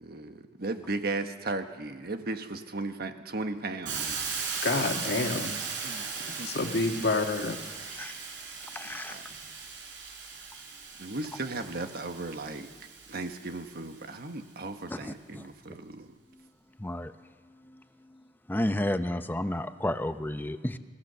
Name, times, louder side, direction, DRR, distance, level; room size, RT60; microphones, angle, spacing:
voice 1, 0.0-4.4 5.8-6.1 6.4-6.5 9.1-9.3 11.0-12.7 13.1-16.1, right 2 dB, 60° right, 7 dB, 1.4 m, -36 dB
Hiss, 3.9-13.7, right 5 dB, 85° right, 4.3 m, -38 dB
voice 2, 4.6-5.5 6.4-8.0 8.8-9.0, left 3 dB, 65° left, 5 dB, 1.6 m, -29 dB
voice 3, 8.7-9.2 14.9-15.4 16.8-17.1 17.7-17.8 18.5-20.8, left 1 dB, 10° left, 10 dB, 0.8 m, -31 dB
25.0 x 16.0 x 6.9 m, 1.5 s
head